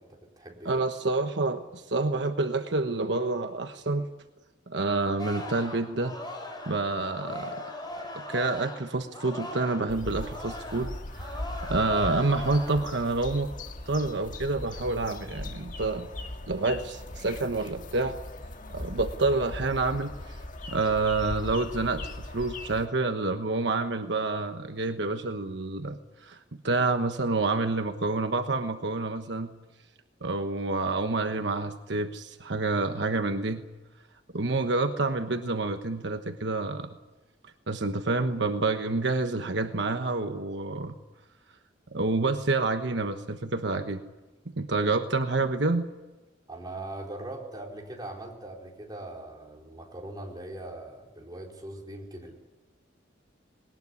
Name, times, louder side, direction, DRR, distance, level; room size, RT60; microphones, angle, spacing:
voice 1, 0.0-0.8 44.8-44.9 46.5-52.4, right 1 dB, 20° right, 0 dB, 4.3 m, -41 dB
voice 2, 0.6-4.1 4.7-6.2 6.7-7.6 8.1-13.5 13.9-16.1 16.5-18.2 18.7-20.4 20.7-26.4 26.6-29.5 30.2-33.6 34.3-36.9 37.7-40.9 41.9-44.0 44.5-45.9, right 3 dB, 70° right, 7 dB, 1.2 m, -28 dB
Singing, 5.2-9.9 10.1-12.9 13.3-13.7, left 1 dB, 25° left, 5.8 m, -40 dB
sound 1, 9.9-22.9, left 1 dB, 45° left, 1.7 m, -39 dB
20.5 x 19.5 x 9.7 m, 1.1 s
head